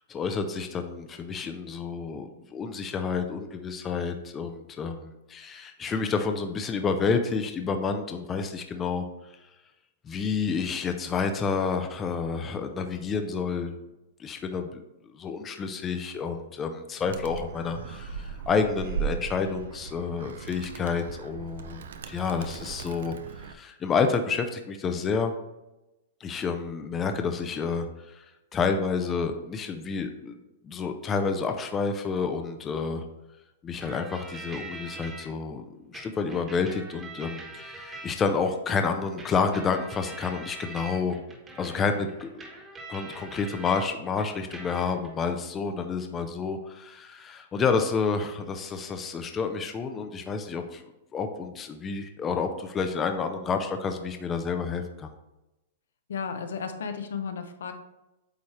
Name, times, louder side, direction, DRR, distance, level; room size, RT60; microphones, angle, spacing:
voice 1, 0.1-9.3 10.0-13.8 14.2-14.8 15.1-25.3 26.2-28.2 28.5-30.4 30.6-33.0 33.6-41.2 41.6-42.5 42.9-50.8 51.1-55.1, left 5 dB, 15° left, 6 dB, 0.5 m, -29 dB
Animal, 17.1-23.5, right 7 dB, 80° right, 0.6 m, -37 dB
sound 1, 33.8-35.3 35.9-38.5 39.2-43.9 44.2-45.1, right 2 dB, 15° right, 1.4 m, -43 dB
voice 2, 56.1-57.7, left 6 dB, 85° left, 7 dB, 0.8 m, -33 dB
8.5 x 3.2 x 4.2 m, 0.96 s
hypercardioid pair, 160°, 0 cm